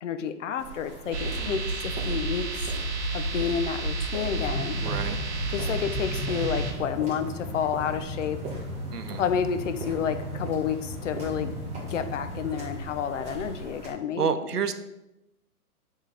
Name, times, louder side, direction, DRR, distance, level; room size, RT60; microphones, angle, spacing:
voice 1, 0.0-2.6 3.1-4.8 5.5-8.4 9.2-11.5 11.9-14.3, left 7 dB, 55° left, 9 dB, 0.7 m, -30 dB
sound 1, 0.6-13.9, right 2 dB, 15° right, 1.3 m, -43 dB
sound 2, 1.1-6.7, right 2 dB, 45° right, 1.9 m, -30 dB
Train, 4.4-13.3, equal, 5° left, 0.7 m, -36 dB
voice 2, 4.8-5.2 8.9-9.2 14.2-14.7, right 6 dB, 85° right, 9 dB, 0.7 m, -29 dB
6.6 x 3.8 x 4.9 m, 0.90 s
hypercardioid pair, 130°, 45 cm